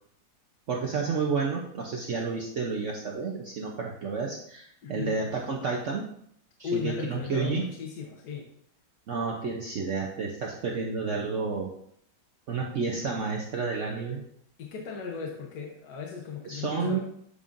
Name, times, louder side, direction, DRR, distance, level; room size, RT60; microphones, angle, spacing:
voice 1, 0.7-6.1 6.6-7.7 9.1-11.7 12.5-14.2 16.4-17.0, right 4 dB, 65° right, 0 dB, 0.7 m, -30 dB
voice 2, 4.8-5.2 6.6-8.5 14.6-17.0, left 6 dB, 65° left, -1 dB, 1.3 m, -36 dB
8.3 x 5.3 x 2.5 m, 0.69 s
omnidirectional pair, 2.0 m